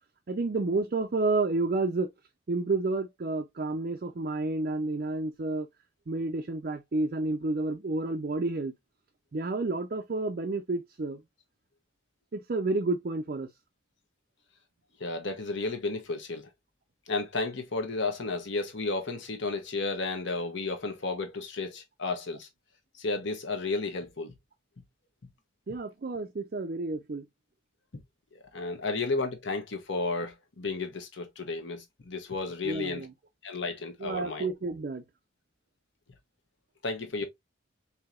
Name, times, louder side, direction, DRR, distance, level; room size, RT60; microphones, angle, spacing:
voice 1, 0.3-2.1 2.5-5.7 6.1-8.7 9.3-11.2 12.3-13.5 25.7-27.2 32.6-33.1 34.0-35.0, right 3 dB, 45° right, 0.4 m, -30 dB
voice 2, 15.0-16.5 17.1-22.5 23.0-24.3 28.5-33.1 33.4-34.5 36.8-37.2, left 3 dB, 65° left, 1.0 m, -33 dB
4.7 x 2.8 x 2.4 m
head